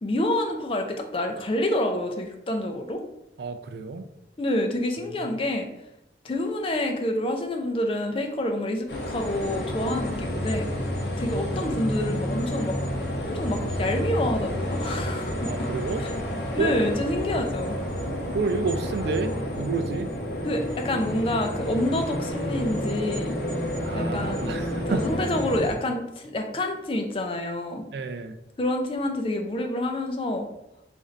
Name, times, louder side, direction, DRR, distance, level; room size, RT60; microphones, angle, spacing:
voice 1, 0.0-3.0 4.4-5.7 6.2-10.7 11.2-12.8 13.2-15.7 16.0-16.1 16.5-17.8 20.4-23.3 23.9-24.5 24.9-27.8 28.6-30.5, left 1 dB, 30° left, 4 dB, 0.4 m, -28 dB
voice 2, 3.4-4.1 15.4-16.0 16.6-16.8 18.1-20.1 23.8-25.1 27.9-28.4, right 4 dB, 65° right, 9 dB, 0.3 m, -30 dB
sound 1, 8.9-25.7, equal, 65° left, 0.7 m, -30 dB
3.1 x 2.5 x 3.8 m, 0.85 s
head